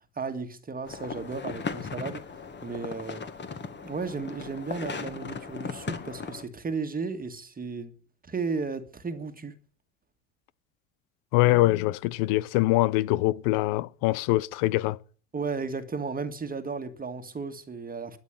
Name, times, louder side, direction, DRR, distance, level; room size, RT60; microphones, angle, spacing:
voice 1, 0.1-2.2 2.6-3.2 3.8-7.9 8.2-9.5 15.3-18.2, right 4 dB, 20° right, 1.8 m, -34 dB
sound 1, 0.8-6.4, left 5 dB, 25° left, 1.9 m, -37 dB
voice 2, 11.3-15.0, left 18 dB, 55° left, 0.8 m, -23 dB
13.0 x 9.0 x 9.0 m
hypercardioid pair, 80°, 41 cm